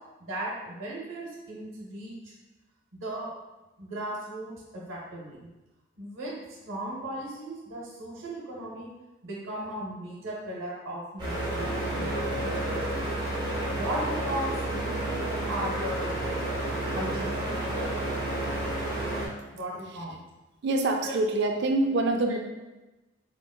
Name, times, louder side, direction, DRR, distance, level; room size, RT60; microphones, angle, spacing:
voice 1, 0.2-2.3 3.0-3.3 3.8-5.5 6.0-6.4 6.6-8.9 9.2-12.8 13.7-16.2 16.9-17.9 19.5-20.2 21.0-21.1, right 1 dB, 80° right, -4 dB, 0.8 m, -37 dB
sound 1, 11.2-19.3, right 1 dB, 20° right, 0.7 m, -30 dB
sound 2, 11.9-19.0, left 4 dB, 20° left, 0.4 m, -47 dB
voice 2, 20.6-22.4, right 2 dB, 55° right, 4 dB, 0.4 m, -25 dB
3.5 x 3.0 x 2.3 m, 1.1 s
head